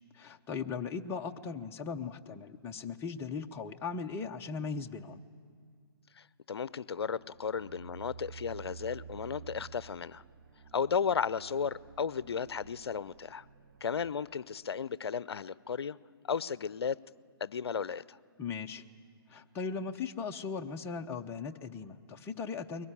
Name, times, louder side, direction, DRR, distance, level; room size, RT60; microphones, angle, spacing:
voice 1, 0.1-5.2 18.4-18.8 19.3-22.9, left 5 dB, 20° left, 4 dB, 0.8 m, -38 dB
voice 2, 6.1-10.2 10.7-13.4 13.8-16.0 16.2-17.0 17.4-18.2, left 6 dB, 75° left, 19 dB, 0.6 m, -34 dB
sound 1, 6.7-14.1, right 6 dB, 55° right, 1.2 m, -51 dB
22.5 x 18.5 x 9.9 m, 2.1 s
hypercardioid pair, 135°, 13 cm